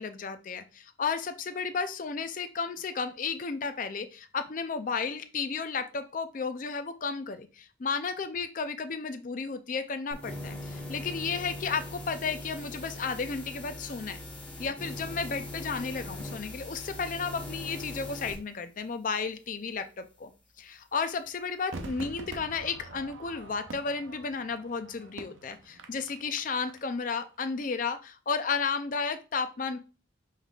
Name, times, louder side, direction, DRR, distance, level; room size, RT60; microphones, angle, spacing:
voice 1, 0.0-14.2 14.6-20.3 20.6-29.8, left 5 dB, 45° left, 10 dB, 0.4 m, -33 dB
sound 1, 10.1-18.4, left 1 dB, 5° left, 1.1 m, -41 dB
Crowd / Fireworks, 21.7-27.1 27.4-27.5, right 2 dB, 80° right, 0.6 m, -45 dB
5.5 x 3.5 x 2.4 m, 0.33 s
head